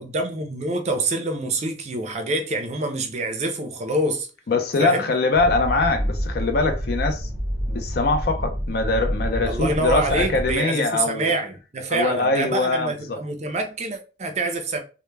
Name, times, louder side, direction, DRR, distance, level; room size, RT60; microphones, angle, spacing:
voice 1, 0.0-4.3 4.8-5.0 9.4-14.8, right 2 dB, 40° right, 0.4 m, -26 dB
voice 2, 4.5-7.3 7.7-11.3 11.9-13.2, left 3 dB, 55° left, 0.5 m, -23 dB
sound 1, 5.3-10.6, equal, 5° right, 0.7 m, -28 dB
2.1 x 2.1 x 3.2 m
head